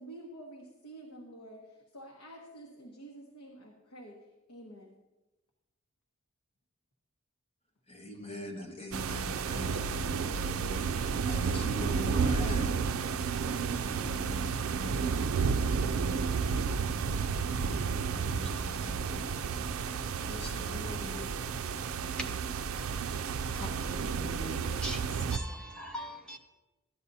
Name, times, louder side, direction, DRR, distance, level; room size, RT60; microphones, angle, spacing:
voice 1, 0.0-4.1 4.5-4.9, right 1 dB, 85° left, 0 dB, 1.2 m, -49 dB
voice 2, 7.9-12.7 13.8-14.5 14.7-15.8 17.6-19.5 20.2-21.3, left 1 dB, 25° left, 0 dB, 1.3 m, -43 dB
sound 1, 8.9-25.4, right 5 dB, 75° right, 0.4 m, -31 dB
voice 3, 24.1-26.4, equal, 5° left, 1 dB, 1.0 m, -41 dB
13.5 x 9.7 x 2.7 m, 1.1 s
head